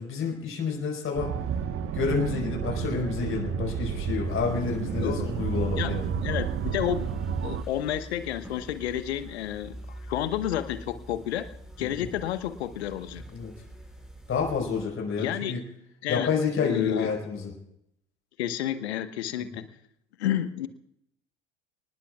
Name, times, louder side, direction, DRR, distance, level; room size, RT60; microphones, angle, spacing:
voice 1, 0.0-1.3 1.9-6.1 11.8-12.1 13.3-13.5 14.3-15.6 16.1-17.5 19.4-19.6, left 5 dB, 40° left, 0 dB, 5.1 m, -29 dB
sound 1, 1.1-7.6, right 7 dB, 40° right, 1.4 m, -31 dB
sound 2, 4.3-14.9, equal, ahead, 6.0 m, -45 dB
voice 2, 6.2-7.1 7.4-9.8 10.1-11.5 11.8-13.2 15.2-15.6 16.0-16.3 16.6-17.1 18.4-19.6 20.2-20.7, left 11 dB, 75° left, 12 dB, 1.1 m, -30 dB
29.0 x 20.0 x 2.4 m, 0.74 s
figure-of-eight pair, 60°, 33 cm